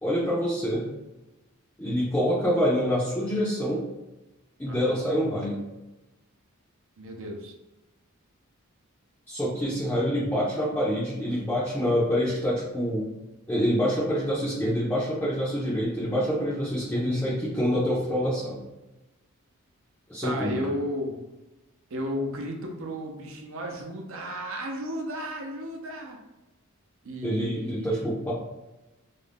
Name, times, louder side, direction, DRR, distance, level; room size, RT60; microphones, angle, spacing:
voice 1, 0.0-0.8 1.8-3.8 4.6-5.6 9.3-13.1 13.5-18.6 20.1-20.6 27.2-28.3, equal, 10° left, -10 dB, 0.5 m, -26 dB
voice 2, 4.7-5.0 7.0-7.5 20.2-21.2 21.9-26.2 27.0-27.9, equal, 65° right, 1 dB, 0.6 m, -34 dB
2.5 x 2.2 x 3.3 m, 1.0 s
head